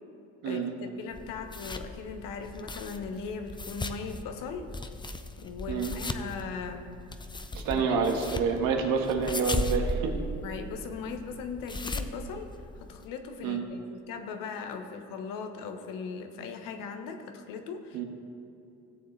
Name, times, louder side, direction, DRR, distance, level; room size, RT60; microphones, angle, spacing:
voice 1, 0.4-4.7 5.4-6.9 7.7-8.1 10.4-18.0, left 5 dB, 75° left, 6 dB, 1.1 m, -39 dB
sound 1, 1.1-13.0, left 1 dB, 15° left, 0.6 m, -37 dB
voice 2, 7.5-10.2 13.4-13.6 17.9-18.0, right 5 dB, 80° right, 2 dB, 1.5 m, -28 dB
16.5 x 7.2 x 3.3 m, 2.7 s
supercardioid pair, 80°, 33 cm